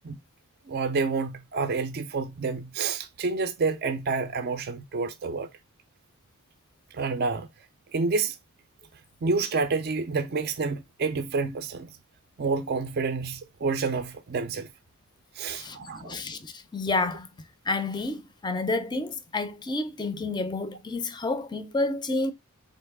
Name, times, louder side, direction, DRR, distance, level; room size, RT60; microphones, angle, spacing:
voice 1, 0.7-5.5 6.9-7.5 7.9-8.4 9.2-11.9 12.4-14.7 15.4-16.2, right 4 dB, 45° right, 0.4 m, -28 dB
voice 2, 15.4-17.3 17.7-22.3, left 2 dB, 20° left, 0.5 m, -30 dB
3.9 x 3.1 x 3.4 m
head